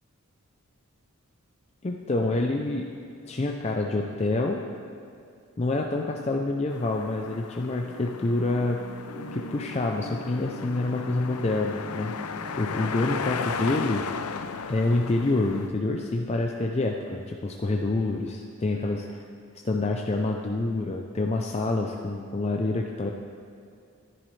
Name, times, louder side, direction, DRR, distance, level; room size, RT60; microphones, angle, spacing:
voice 1, 1.8-2.9 3.3-4.6 5.6-8.8 9.3-14.3 14.7-19.2 19.6-23.1, left 2 dB, 30° left, 1 dB, 0.4 m, -27 dB
sound 1, 6.7-15.7, left 5 dB, 80° left, 0.5 m, -36 dB
sound 2, 7.8-13.3, equal, 60° left, 3.1 m, -42 dB
14.5 x 10.5 x 3.2 m, 2.4 s
head